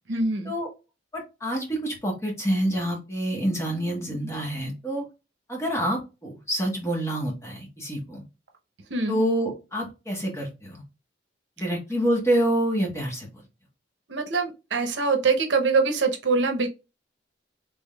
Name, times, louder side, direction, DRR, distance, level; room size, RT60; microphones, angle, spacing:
voice 1, 0.1-0.5 8.9-9.2 14.1-16.7, right 4 dB, 75° right, 4 dB, 0.7 m, -24 dB
voice 2, 1.1-5.0 5.5-8.2 9.1-10.8 11.6-13.3, right 1 dB, 15° left, 0 dB, 1.1 m, -27 dB
3.5 x 3.4 x 2.2 m, 0.28 s
head